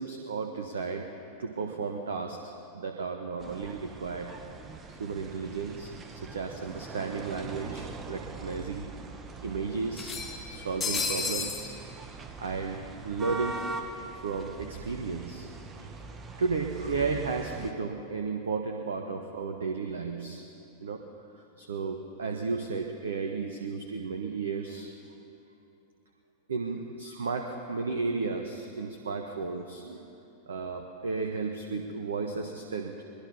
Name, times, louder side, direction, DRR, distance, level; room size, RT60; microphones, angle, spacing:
voice 1, 0.0-4.3 4.9-8.9 9.4-10.2 10.5-11.7 12.4-13.8 14.1-15.5 15.8-15.9 16.4-20.4 20.8-21.0 21.6-24.9 26.5-30.1 30.5-33.0, right 4 dB, 65° right, 5 dB, 1.3 m, -34 dB
sound 1, 3.4-17.7, right 3 dB, 25° right, 1.7 m, -42 dB
sound 2, 6.5-6.6 6.9-7.0 8.1-8.2 8.5-8.6 9.9-11.7, left 4 dB, 20° left, 3.1 m, -32 dB
22.0 x 22.0 x 5.6 m, 2.7 s
figure-of-eight pair, 90°, 0 cm